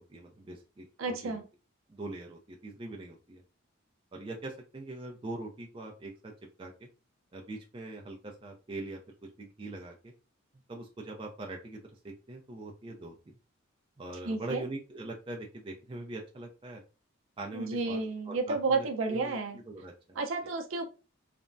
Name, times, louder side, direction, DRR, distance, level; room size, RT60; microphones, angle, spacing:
voice 1, 0.0-1.4 1.9-3.4 4.1-6.3 6.6-6.9 7.3-10.1 10.7-13.1 14.0-16.8 17.4-18.0 18.3-20.2, right 2 dB, 25° right, 1 dB, 0.4 m, -42 dB
voice 2, 1.0-1.4 14.2-14.6 17.5-19.6 20.2-20.8, right 3 dB, 75° right, 5 dB, 0.5 m, -31 dB
3.3 x 2.0 x 2.5 m, 0.32 s
head